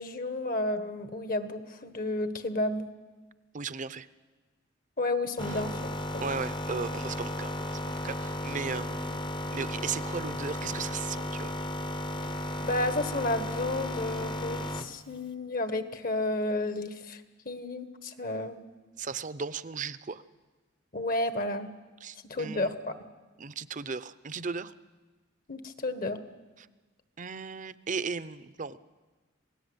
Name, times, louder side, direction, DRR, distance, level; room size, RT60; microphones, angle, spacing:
voice 1, 0.0-2.9 5.0-6.3 12.6-18.6 20.9-21.7 22.3-23.0 25.5-26.2, left 2 dB, 50° left, 9 dB, 1.5 m, -32 dB
voice 2, 3.5-4.1 5.5-5.6 6.2-7.6 7.9-11.6 19.0-20.2 22.0-22.7 23.4-24.7 26.6-26.7 27.2-28.8, right 5 dB, 40° right, 15 dB, 0.7 m, -36 dB
sound 1, 5.4-14.9, left 1 dB, 25° left, 0.9 m, -34 dB
27.0 x 17.5 x 8.1 m, 1.3 s
head